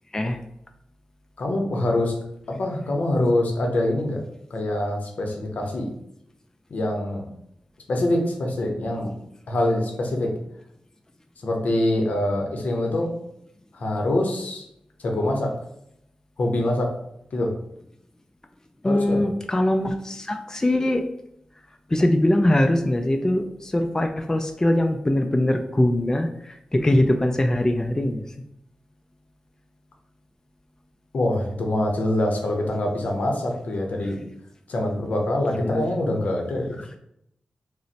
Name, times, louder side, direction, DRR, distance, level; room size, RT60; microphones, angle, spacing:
voice 1, 1.4-2.1 2.6-4.2 4.5-5.9 6.7-7.2 7.9-9.1 9.5-10.3 11.4-13.1 13.7-14.6 15.0-15.5 16.4-16.9 17.3-17.5 18.8-19.3 31.1-34.2 34.7-36.8, left 1 dB, 75° left, 1 dB, 0.6 m, -24 dB
voice 2, 18.8-21.0 21.9-26.3 26.7-28.2 35.6-35.8, left 1 dB, 20° left, 5 dB, 0.3 m, -22 dB
2.5 x 2.0 x 3.9 m, 0.76 s
cardioid pair, 45°, 3 cm